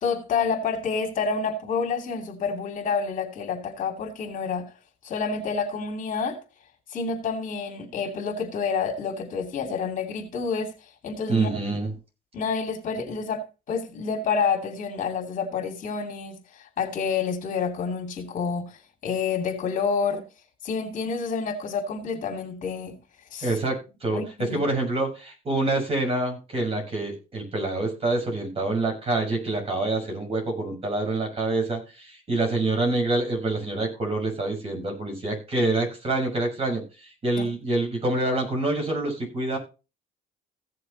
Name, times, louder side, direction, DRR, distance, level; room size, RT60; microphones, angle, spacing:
voice 1, 0.0-4.7 5.0-6.4 6.9-10.7 11.0-11.5 12.3-18.8 19.0-20.2 20.6-23.0 23.3-23.5 24.1-24.6 37.4-37.5, left 5 dB, 50° left, 2.8 m, -28 dB
voice 2, 11.3-11.9 23.4-39.6, right 2 dB, 35° right, 6.5 m, -26 dB
16.0 x 6.8 x 4.2 m
cardioid pair, 110°, 17 cm